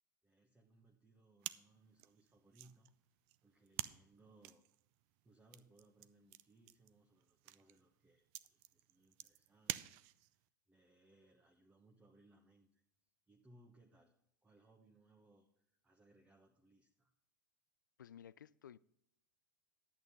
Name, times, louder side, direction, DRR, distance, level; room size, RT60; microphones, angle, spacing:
voice 1, 0.2-3.0 3.4-4.6 5.2-12.8 13.3-14.1 14.4-17.1, right 2 dB, 10° right, 1.1 m, -68 dB
sound 1, 1.4-10.4, right 16 dB, 45° right, 0.5 m, -50 dB
voice 2, 18.0-18.8, left 9 dB, 75° left, 0.4 m, -55 dB
10.5 x 8.5 x 4.1 m
figure-of-eight pair, 90°, 10 cm